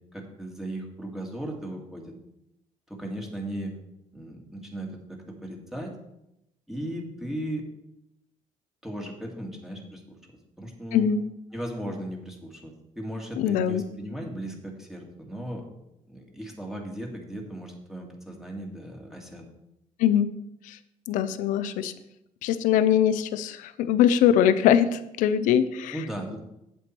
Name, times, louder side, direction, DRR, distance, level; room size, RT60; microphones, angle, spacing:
voice 1, 0.1-2.1 2.9-3.7 4.1-5.9 6.7-7.6 8.8-10.2 10.6-11.1 11.5-15.7 16.1-19.5 25.9-26.4, right 1 dB, 5° right, 0 dB, 1.9 m, -36 dB
voice 2, 10.9-11.2 13.4-13.8 20.0-20.3 20.6-20.8 21.1-21.9 22.4-26.0, left 9 dB, 85° left, 12 dB, 0.6 m, -22 dB
8.1 x 7.8 x 4.4 m, 0.85 s
cardioid pair, 105°, 13 cm